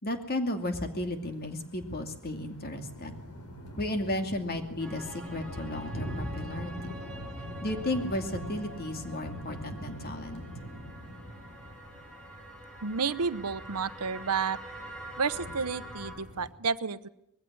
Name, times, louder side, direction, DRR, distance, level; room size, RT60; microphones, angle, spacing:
voice 1, 0.0-3.2 3.8-5.0 5.3-6.7 7.6-10.4, left 1 dB, 45° left, 6 dB, 2.5 m, -33 dB
sound 1, 0.6-16.5, equal, 80° left, 4.6 m, -44 dB
sound 2, 4.8-16.1, right 1 dB, 5° left, 5.8 m, -46 dB
voice 2, 12.8-14.6 15.2-17.1, right 5 dB, 90° right, 15 dB, 0.9 m, -31 dB
21.0 x 15.5 x 9.7 m, 0.82 s
head